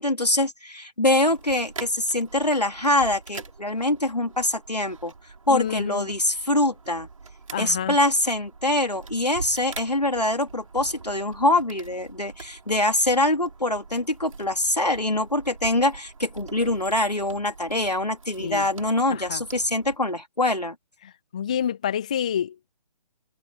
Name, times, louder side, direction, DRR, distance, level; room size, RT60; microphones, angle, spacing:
voice 1, 0.0-5.1 5.5-7.1 7.6-20.7, left 1 dB, 80° left, 3.3 m, -24 dB
sound 1, 1.2-20.0, right 4 dB, 60° right, 6.5 m, -43 dB
voice 2, 5.5-6.1 7.5-8.0 18.4-18.7 19.1-19.4 21.0-22.7, left 9 dB, 10° left, 0.4 m, -28 dB
figure-of-eight pair, 140°, 20 cm